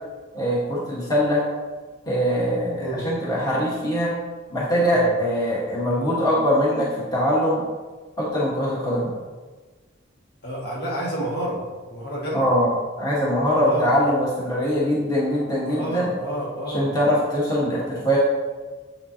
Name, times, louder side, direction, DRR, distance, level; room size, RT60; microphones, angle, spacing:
voice 1, 0.3-1.4 2.1-4.1 4.5-7.6 8.2-9.1 12.3-12.7 13.0-16.1 16.7-18.2, equal, 20° left, -6 dB, 1.4 m, -22 dB
voice 2, 2.8-3.1 4.9-5.2 10.4-12.5 13.6-14.0 15.7-17.0, right 1 dB, 55° left, -5 dB, 1.9 m, -30 dB
7.6 x 7.6 x 2.9 m, 1.4 s
head